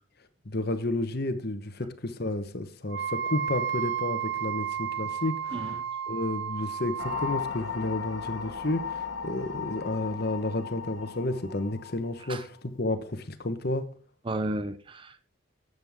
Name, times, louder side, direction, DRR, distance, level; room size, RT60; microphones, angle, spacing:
voice 1, 0.4-5.5 6.1-13.9, left 2 dB, 50° left, 1.1 m, -31 dB
Wind instrument woodwind instrument, 2.9-7.4, right 8 dB, 60° right, 0.9 m, -32 dB
voice 2, 5.5-5.8 12.2-12.4 14.2-15.3, right 1 dB, 25° right, 0.6 m, -33 dB
sound 1, 7.0-12.4, left 7 dB, 75° left, 1.3 m, -36 dB
13.0 x 8.0 x 3.6 m
head